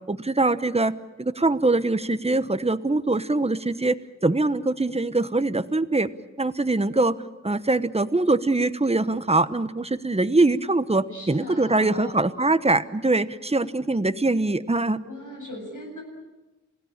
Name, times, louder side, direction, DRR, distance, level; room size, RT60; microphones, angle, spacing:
voice 1, 0.1-6.1 6.4-7.2 7.4-15.0, right 2 dB, 20° right, 13 dB, 1.0 m, -23 dB
voice 2, 11.1-12.2 15.0-16.0, left 1 dB, 75° left, 2 dB, 7.6 m, -39 dB
28.0 x 17.0 x 8.8 m, 1.1 s
wide cardioid pair, 55°, 31 cm